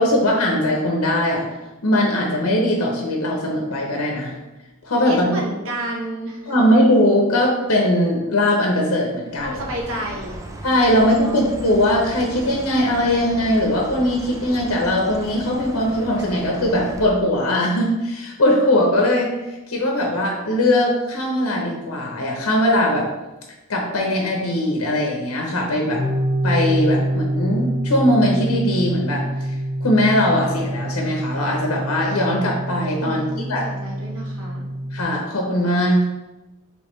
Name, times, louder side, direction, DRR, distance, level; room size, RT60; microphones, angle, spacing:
voice 1, 0.0-1.4 1.8-4.3 4.8-5.3 6.5-9.6 10.6-23.1 23.7-26.0 26.4-29.5 29.8-33.2 33.5-33.7 34.9-36.0, left 1 dB, 90° left, 0 dB, 0.8 m, -20 dB
voice 2, 5.0-6.5 9.4-10.4 11.2-11.4 33.0-34.7, equal, 70° right, -2 dB, 1.1 m, -30 dB
Chirp tweet, 9.3-17.1, right 1 dB, 15° right, 0.4 m, -36 dB
sound 1, 25.9-35.0, right 1 dB, 45° right, 1.3 m, -26 dB
5.3 x 3.2 x 3.2 m, 1.0 s
head